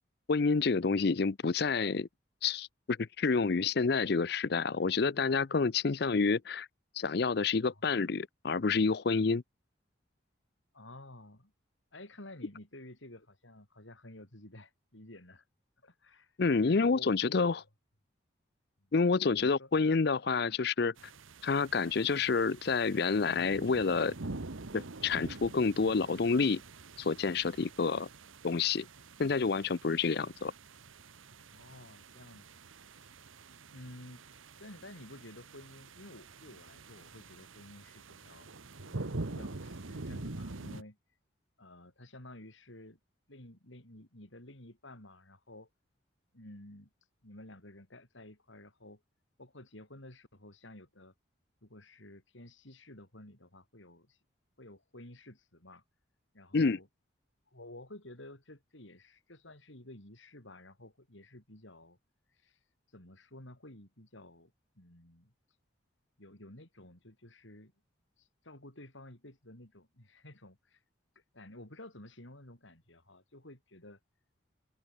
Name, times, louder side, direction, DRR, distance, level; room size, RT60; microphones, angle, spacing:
voice 1, 0.3-2.1 2.4-6.7 7.0-9.4 16.4-17.6 18.9-20.9 21.4-24.1 24.7-26.6 27.0-28.1 28.4-28.9 29.2-30.5 56.5-56.8, left 4 dB, 55° left, 0.5 m, -28 dB
voice 2, 10.7-11.5 11.9-15.4 15.8-16.3 16.6-17.2 19.3-19.7 31.5-32.7 33.7-34.2 34.6-41.0 41.6-43.0 43.3-45.7 46.3-46.9 47.2-49.0 49.4-51.1 51.6-54.2 54.6-55.8 56.3-56.9 57.5-62.0 62.4-62.6 62.9-65.3 66.2-67.7 68.2-70.8 71.3-74.0, left 1 dB, 75° left, 5.4 m, -52 dB
sound 1, 21.0-40.8, right 2 dB, 90° right, 1.4 m, -46 dB
open air
head